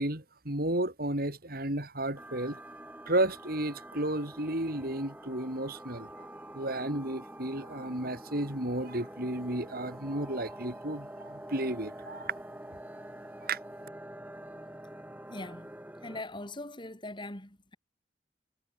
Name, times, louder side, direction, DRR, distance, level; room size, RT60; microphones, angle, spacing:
voice 1, 0.0-2.6 3.1-6.1 6.5-12.3 13.5-13.6, right 1 dB, 55° right, 5.1 m, -33 dB
sound 1, 2.2-16.2, right 1 dB, 10° right, 4.1 m, -46 dB
voice 2, 15.3-15.7 16.0-17.8, left 2 dB, 25° left, 4.3 m, -41 dB
head